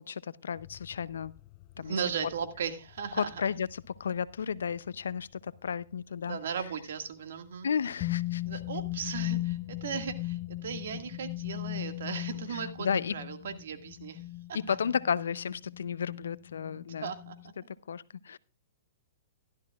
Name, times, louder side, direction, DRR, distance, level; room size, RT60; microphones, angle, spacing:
voice 1, 0.0-1.3 1.8-2.0 3.1-6.4 7.6-8.6 12.5-13.1 14.7-17.1 17.6-18.4, left 7 dB, 90° left, 18 dB, 0.6 m, -33 dB
sound 1, 0.6-5.8 8.0-17.5, left 18 dB, 35° left, 0.6 m, -39 dB
voice 2, 1.8-3.3 6.3-7.7 8.5-14.2 14.5-14.8 16.7-17.4, right 7 dB, 75° right, 8 dB, 1.9 m, -37 dB
16.0 x 12.5 x 2.4 m, 0.30 s
hypercardioid pair, 140°, 0 cm